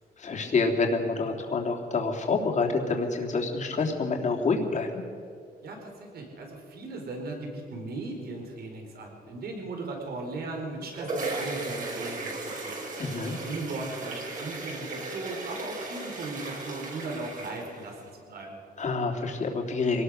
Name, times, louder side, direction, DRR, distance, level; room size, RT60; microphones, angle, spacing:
voice 1, 0.2-5.0 13.0-13.3 18.8-20.0, left 4 dB, 45° left, 2 dB, 3.3 m, -27 dB
voice 2, 5.6-12.8 13.4-18.6, right 2 dB, 70° right, 2 dB, 4.8 m, -38 dB
sound 1, 10.6-18.1, right 3 dB, 55° right, 5.8 m, -36 dB
25.0 x 19.0 x 6.6 m, 2.3 s
wide cardioid pair, 140°, 17 cm